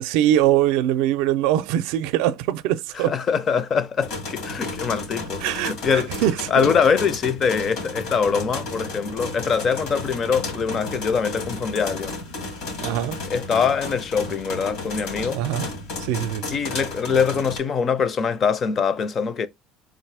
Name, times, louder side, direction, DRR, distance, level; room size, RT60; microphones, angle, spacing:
voice 1, 0.0-3.1 5.4-6.7 12.8-13.2 15.3-15.7 16.0-16.4, right 12 dB, 85° right, 0.4 m, -22 dB
voice 2, 2.9-6.1 6.5-12.2 13.3-15.4 16.5-19.5, left 6 dB, 35° left, 0.5 m, -23 dB
sound 1, 4.0-17.6, left 2 dB, 80° left, 2.1 m, -33 dB
3.8 x 2.7 x 4.7 m
cardioid pair, 150°, 0 cm